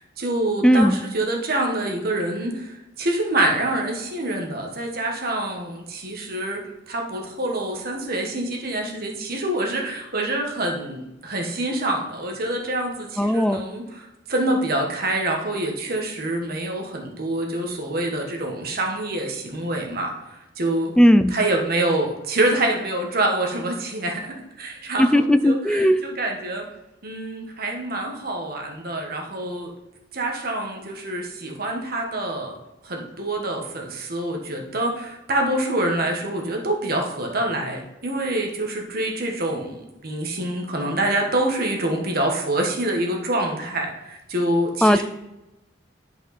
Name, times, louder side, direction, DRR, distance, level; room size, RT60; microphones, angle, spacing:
voice 1, 0.0-6.6 6.9-21.0 21.3-26.7 27.0-29.7 30.1-32.6 32.8-45.0, right 1 dB, 55° right, 1 dB, 1.6 m, -26 dB
voice 2, 0.6-1.0 13.2-13.6 21.0-21.3 25.0-26.0 44.8-45.0, equal, 5° left, 10 dB, 0.4 m, -16 dB
11.0 x 5.2 x 4.2 m, 0.93 s
head